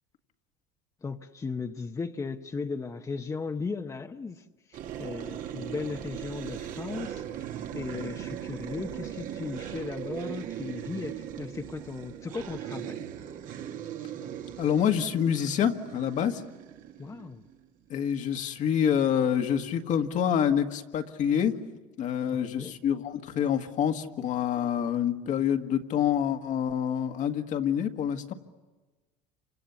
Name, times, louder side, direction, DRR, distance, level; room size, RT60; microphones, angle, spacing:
voice 1, 1.0-13.1 17.0-17.4 22.3-22.8, left 4 dB, 20° left, 5 dB, 0.9 m, -37 dB
sound 1, 4.7-17.6, right 10 dB, 55° right, 1.8 m, -39 dB
voice 2, 14.6-16.4 17.9-21.5 22.0-28.3, left 8 dB, 50° left, 6 dB, 1.7 m, -27 dB
29.5 x 26.0 x 7.2 m, 1.2 s
supercardioid pair, 105°, 16 cm